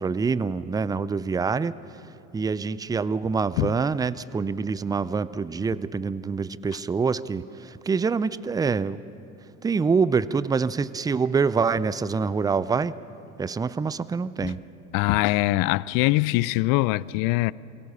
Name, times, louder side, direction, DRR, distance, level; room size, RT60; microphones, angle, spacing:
voice 1, 0.0-1.7 2.3-9.0 9.6-12.9 13.4-14.6, right 5 dB, 10° right, 0.4 m, -25 dB
voice 2, 14.9-17.5, left 19 dB, 55° left, 0.5 m, -23 dB
23.0 x 17.0 x 6.7 m
hypercardioid pair, 75°, 41 cm